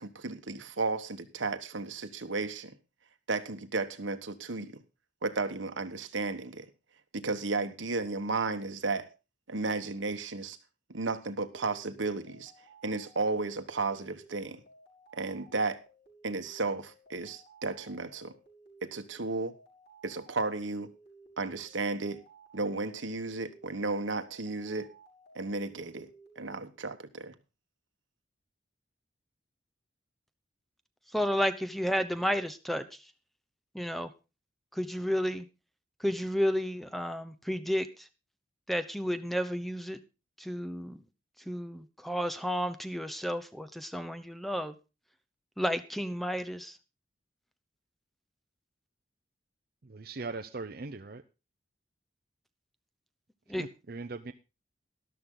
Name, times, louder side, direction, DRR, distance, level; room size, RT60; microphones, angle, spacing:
voice 1, 0.0-2.7 3.3-4.8 5.2-6.7 7.1-9.1 9.5-10.6 10.9-12.5 12.8-14.6 15.1-15.8 16.2-18.3 18.8-19.5 20.0-20.9 21.4-22.2 22.5-24.9 25.3-26.1 26.3-27.3, right 3 dB, 85° right, 8 dB, 1.4 m, -33 dB
sound 1, 11.4-26.5, right 2 dB, 60° left, 5.9 m, -58 dB
voice 2, 31.1-32.9 33.7-34.1 34.7-35.5 36.0-38.1 38.7-40.0 40.4-41.0 41.5-44.7 45.6-46.8 53.5-53.6, equal, ahead, 11 dB, 0.7 m, -32 dB
voice 3, 49.8-51.2 53.6-54.3, right 3 dB, 50° right, 6 dB, 0.7 m, -40 dB
13.0 x 12.5 x 3.9 m, 0.29 s
head